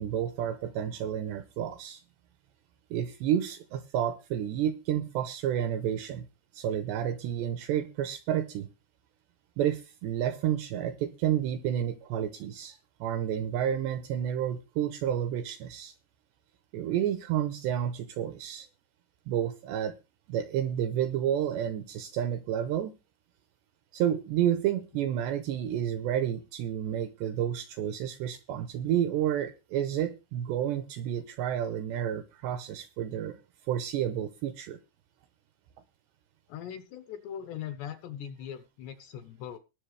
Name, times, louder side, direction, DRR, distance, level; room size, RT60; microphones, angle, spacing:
voice 1, 0.0-2.0 2.9-6.3 6.5-8.7 9.6-15.9 16.7-18.7 19.3-20.0 20.3-22.9 23.9-33.4 33.7-34.8, right 10 dB, 75° right, 10 dB, 2.6 m, -30 dB
voice 2, 36.5-39.6, left 9 dB, 75° left, 9 dB, 2.7 m, -40 dB
20.5 x 7.1 x 3.3 m, 0.27 s
omnidirectional pair, 5.8 m